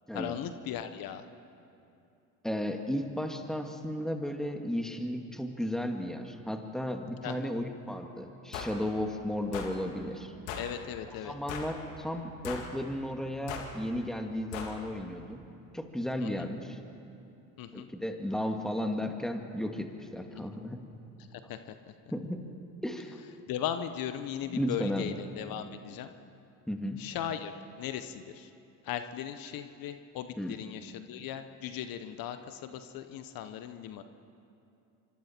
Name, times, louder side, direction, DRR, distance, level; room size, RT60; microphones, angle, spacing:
voice 1, 0.1-1.2 7.2-7.5 10.6-11.3 16.2-16.5 17.6-17.9 20.3-20.5 21.3-21.9 23.5-26.1 27.0-27.5 27.8-28.5 28.8-34.0, left 10 dB, 60° left, 9 dB, 1.2 m, -38 dB
voice 2, 2.4-10.3 11.2-15.4 15.7-16.8 17.7-20.8 22.1-22.4 22.8-23.2 24.5-25.1 26.7-27.0 30.4-30.5, left 1 dB, ahead, 4 dB, 2.1 m, -34 dB
sound 1, 8.5-8.8 9.5-9.7 10.5-10.7 11.5-11.8 12.4-12.7 13.5-13.7 14.5-14.8, left 6 dB, 80° left, 2.5 m, -38 dB
25.5 x 25.0 x 4.5 m, 2.6 s
supercardioid pair, 80°, 39 cm